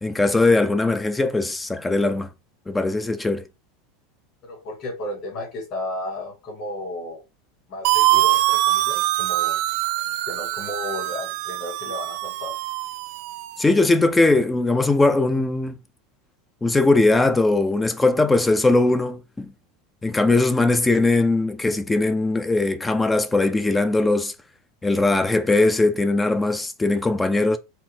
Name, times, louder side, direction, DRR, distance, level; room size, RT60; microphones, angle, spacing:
voice 1, 0.0-2.3 2.7-3.4 13.6-15.8 16.6-19.5 20.0-24.3 24.8-27.6, left 2 dB, 10° left, 0.4 m, -20 dB
voice 2, 4.4-7.2 7.7-9.6 10.3-12.5, left 1 dB, 45° left, 2.5 m, -33 dB
sound 1, 7.8-13.6, right 17 dB, 60° right, 0.3 m, -23 dB
4.4 x 2.0 x 3.7 m
supercardioid pair, 130°, 0 cm